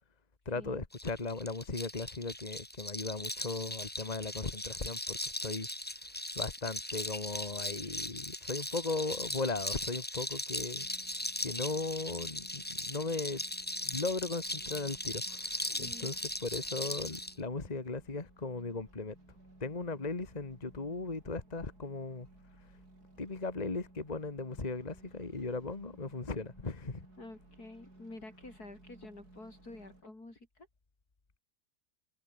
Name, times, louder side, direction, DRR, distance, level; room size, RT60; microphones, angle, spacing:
voice 1, 0.4-5.7 6.3-13.4 13.8-16.1 16.4-19.1 19.6-22.3 23.2-27.1, left 3 dB, 25° left, 1.9 m, -37 dB
sound 1, 0.9-17.3, left 1 dB, 5° left, 1.2 m, -39 dB
sound 2, 10.7-30.0, right 2 dB, 75° right, 8.3 m, -59 dB
voice 2, 15.7-16.1 27.2-30.7, left 2 dB, 75° left, 7.1 m, -49 dB
omnidirectional pair, 1.7 m